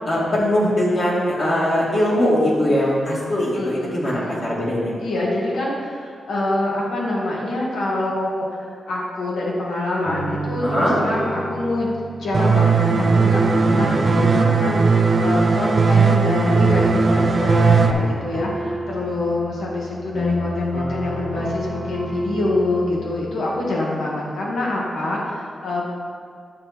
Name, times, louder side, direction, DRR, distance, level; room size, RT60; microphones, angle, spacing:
voice 1, 0.0-4.9 10.6-11.0, left 1 dB, 50° left, -6 dB, 2.3 m, -20 dB
voice 2, 3.5-4.4 5.0-11.9 12.2-25.9, left 2 dB, 85° left, -4 dB, 1.9 m, -25 dB
sound 1, 10.0-23.3, right 1 dB, 15° left, 1.5 m, -30 dB
sound 2, 12.3-17.9, right 4 dB, 40° right, 0.5 m, -17 dB
8.7 x 6.4 x 4.3 m, 2.1 s
wide cardioid pair, 135°, 0 cm